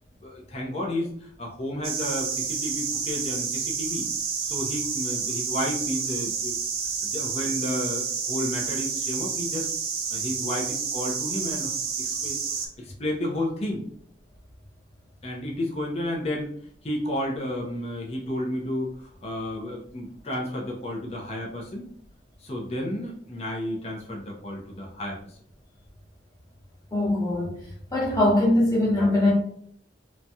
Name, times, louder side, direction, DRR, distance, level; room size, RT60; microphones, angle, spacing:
voice 1, 0.2-4.0 4.4-6.6 7.0-9.7 10.1-11.7 12.0-12.4 12.8-13.8 15.2-16.5 16.8-21.9 22.4-25.2, left 1 dB, 35° left, -2 dB, 0.6 m, -32 dB
sound 1, 1.8-12.7, right 6 dB, 55° right, 0.5 m, -29 dB
voice 2, 26.9-27.6 27.9-29.3, left 1 dB, 20° left, -5 dB, 1.1 m, -21 dB
3.0 x 2.3 x 2.6 m, 0.63 s
head